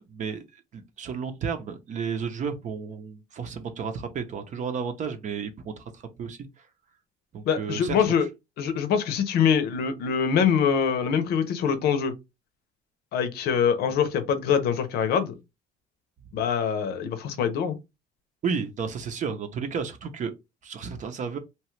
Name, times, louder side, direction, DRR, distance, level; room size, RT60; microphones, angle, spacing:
voice 1, 0.1-0.4 0.7-6.4 7.3-8.0 18.4-20.3 20.6-21.4, right 6 dB, 45° right, 0.6 m, -32 dB
voice 2, 7.5-8.3 8.6-12.1 13.1-15.4 16.3-17.8, left 7 dB, 70° left, 0.7 m, -24 dB
2.9 x 2.3 x 3.1 m
cardioid pair, 110°, 17 cm